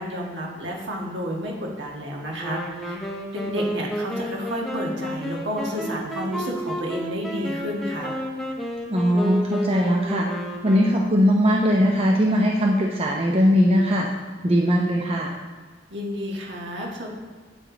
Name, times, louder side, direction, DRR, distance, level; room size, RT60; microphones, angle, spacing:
voice 1, 0.0-8.1 15.9-17.1, equal, 70° right, -2 dB, 1.7 m, -31 dB
Wind instrument woodwind instrument, 2.4-11.4, equal, ahead, 0.8 m, -32 dB
voice 2, 8.9-10.3 10.6-14.1 14.4-15.3, equal, 35° right, -1 dB, 0.6 m, -20 dB
9.0 x 4.8 x 3.9 m, 1.5 s
head